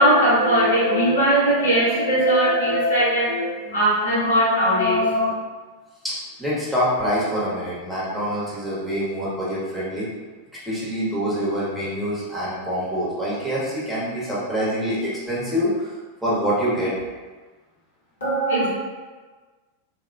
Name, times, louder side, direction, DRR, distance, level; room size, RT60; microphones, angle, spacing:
voice 1, 0.0-5.3 18.2-18.7, equal, 70° left, -8 dB, 1.0 m, -19 dB
voice 2, 6.0-10.1 10.7-15.9 16.2-16.9, equal, 5° right, -9 dB, 1.0 m, -25 dB
3.5 x 2.3 x 2.3 m, 1.3 s
figure-of-eight pair, 90°, 0 cm